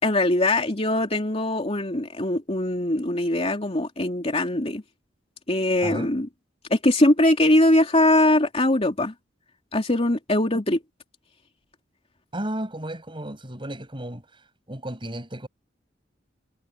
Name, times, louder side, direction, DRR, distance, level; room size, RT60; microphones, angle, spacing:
voice 1, 0.0-4.8 5.5-6.3 6.7-9.1 9.7-10.8, left 1 dB, 35° left, 3.0 m, -21 dB
voice 2, 12.3-14.2 14.7-15.5, right 1 dB, 25° right, 7.2 m, -33 dB
head